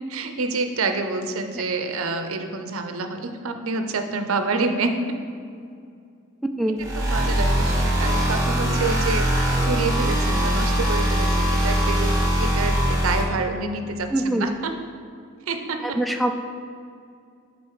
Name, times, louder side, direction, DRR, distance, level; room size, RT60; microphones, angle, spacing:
voice 1, 0.1-4.9 6.8-9.3 9.7-12.1 12.4-14.8 15.5-16.3, right 3 dB, 65° right, 6 dB, 0.6 m, -28 dB
sound 1, 6.8-13.2, equal, 15° right, 1.2 m, -21 dB
voice 2, 14.1-14.5 15.9-16.3, right 1 dB, ahead, 4 dB, 0.4 m, -23 dB
7.5 x 4.2 x 4.8 m, 2.3 s
head